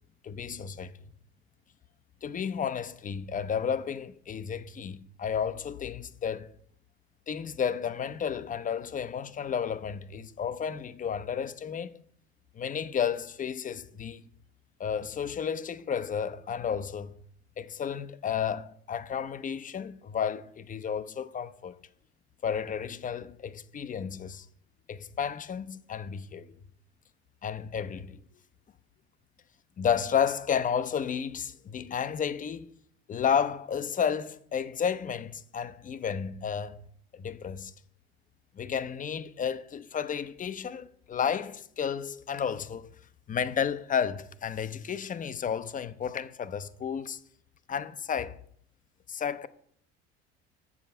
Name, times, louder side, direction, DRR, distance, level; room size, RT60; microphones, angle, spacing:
voice 1, 0.2-0.9 2.2-6.5 7.3-12.0 12.6-14.3 14.8-17.2 17.6-21.8 22.4-24.5 24.9-26.5 27.4-28.2 29.8-32.7 33.1-36.8 37.1-37.7 38.5-42.9 43.3-47.2 47.7-48.4 49.1-49.5, left 7 dB, 25° left, 0.5 m, -32 dB
7.2 x 4.9 x 6.8 m
hypercardioid pair, 70°, 32 cm